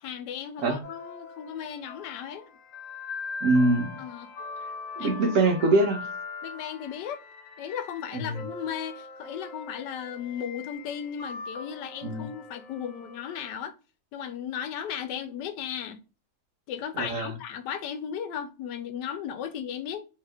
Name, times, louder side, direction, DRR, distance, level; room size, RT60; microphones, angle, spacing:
voice 1, 0.0-2.5 4.0-4.3 5.0-5.4 6.4-7.2 7.6-13.7 14.1-16.0 16.7-20.0, left 8 dB, 85° left, 1.2 m, -36 dB
sound 1, 0.8-13.5, left 4 dB, 65° left, 0.8 m, -41 dB
voice 2, 3.4-4.0 5.0-6.0 8.1-8.5 12.0-12.3 16.9-17.3, right 2 dB, 65° right, 0.9 m, -23 dB
2.8 x 2.8 x 3.3 m
omnidirectional pair, 1.8 m